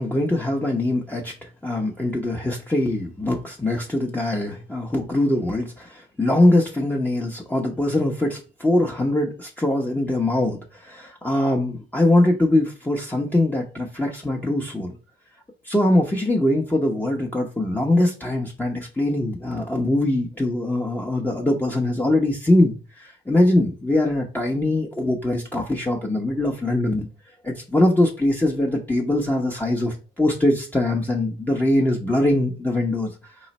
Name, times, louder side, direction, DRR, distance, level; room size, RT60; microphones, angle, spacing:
voice 1, 0.0-15.0 15.6-27.1 27.4-33.3, left 1 dB, 10° left, -1 dB, 0.7 m, -22 dB
3.8 x 3.1 x 4.1 m, 0.34 s
cardioid pair, 90°, 20 cm